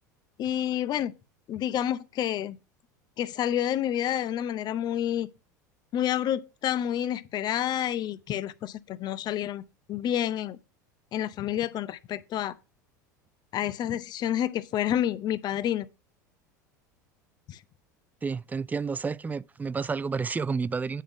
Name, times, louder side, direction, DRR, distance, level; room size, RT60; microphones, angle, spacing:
voice 1, 0.4-1.1 1.5-2.6 3.2-5.3 5.9-10.6 11.1-12.6 13.5-15.9 17.5-17.6, left 11 dB, 45° left, 0.7 m, -29 dB
voice 2, 18.2-21.0, right 5 dB, 15° right, 0.4 m, -30 dB
9.2 x 3.8 x 5.9 m
hypercardioid pair, 85°, 10 cm